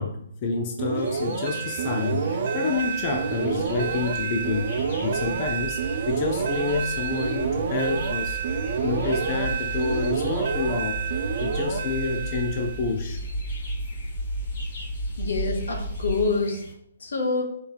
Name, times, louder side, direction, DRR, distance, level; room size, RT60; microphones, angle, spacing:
voice 1, 0.0-5.8 6.1-11.0 11.4-13.2, left 4 dB, 30° left, 2 dB, 0.6 m, -29 dB
sound 1, 0.8-12.9, right 6 dB, 45° right, 0.6 m, -28 dB
sound 2, 0.9-16.7, equal, 45° left, 2.0 m, -44 dB
sound 3, 2.9-16.2, right 1 dB, 65° left, 1.8 m, -34 dB
voice 2, 15.2-16.6 17.0-17.5, left 4 dB, 80° left, 1 dB, 1.8 m, -26 dB
6.9 x 4.4 x 3.4 m, 0.73 s
hypercardioid pair, 165°, 0 cm